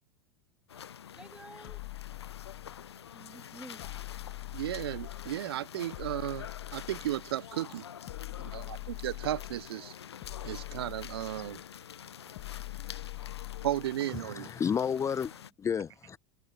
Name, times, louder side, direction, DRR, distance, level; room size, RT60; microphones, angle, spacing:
sound 1, 0.7-15.5, left 9 dB, 80° left, 0.9 m, -47 dB
voice 1, 1.1-1.8 3.1-3.8 8.2-9.0 12.0-13.7 14.9-15.4 15.8-15.9, right 2 dB, 5° right, 2.6 m, -55 dB
sound 2, 1.6-3.0 3.8-5.4 5.9-7.3 8.1-9.7 10.2-11.6 12.4-14.0, left 36 dB, 55° left, 2.2 m, -43 dB
voice 2, 4.5-7.8 8.5-9.9 10.4-11.6 13.6-14.5, right 13 dB, 70° right, 0.8 m, -34 dB
voice 3, 14.2-15.3 15.6-16.2, left 7 dB, 20° left, 0.8 m, -31 dB
figure-of-eight pair, 85°, 14 cm